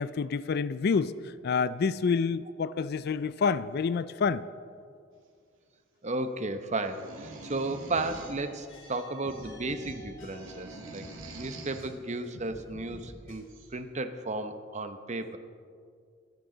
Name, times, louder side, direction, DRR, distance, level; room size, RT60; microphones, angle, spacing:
voice 1, 0.0-4.4, left 5 dB, 55° left, 0.4 m, -28 dB
voice 2, 6.0-11.1 11.3-15.4, right 2 dB, 35° right, 0.9 m, -34 dB
sound 1, 6.8-8.4 8.8-9.5 9.8-11.9 13.0-13.1 13.5-13.7, right 2 dB, 85° right, 2.3 m, -46 dB
sound 2, 7.9-12.0 12.3-13.4, equal, 75° left, 4.7 m, -49 dB
23.0 x 10.5 x 3.9 m
head